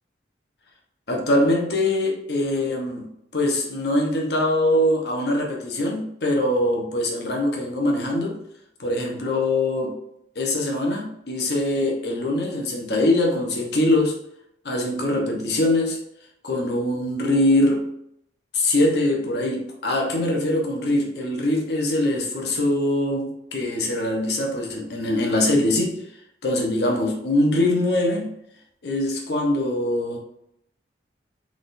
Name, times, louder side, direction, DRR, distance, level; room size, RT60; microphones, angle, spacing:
voice 1, 1.1-8.4 8.8-10.0 10.4-14.2 14.6-16.0 16.4-17.9 18.5-26.0 26.4-28.3 28.8-30.2, left 1 dB, 65° left, 1 dB, 0.9 m, -23 dB
4.1 x 3.6 x 2.6 m, 0.77 s
head